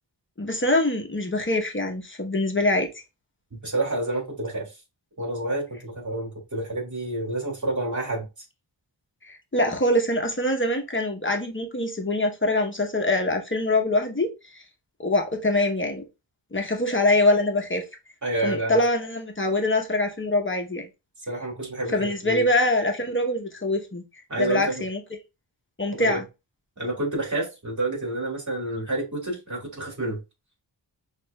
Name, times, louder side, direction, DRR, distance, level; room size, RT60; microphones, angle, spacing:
voice 1, 0.4-2.9 9.2-14.6 15.0-16.0 16.5-17.8 18.4-20.9 21.9-24.0 24.4-25.0 25.8-26.2, left 1 dB, 25° left, 0.9 m, -24 dB
voice 2, 3.5-4.8 5.2-8.3 18.2-18.8 21.3-22.4 24.3-24.8 26.0-26.2 26.8-30.2, right 2 dB, 40° right, 2.2 m, -29 dB
6.0 x 2.5 x 2.2 m
wide cardioid pair, 80°, 44 cm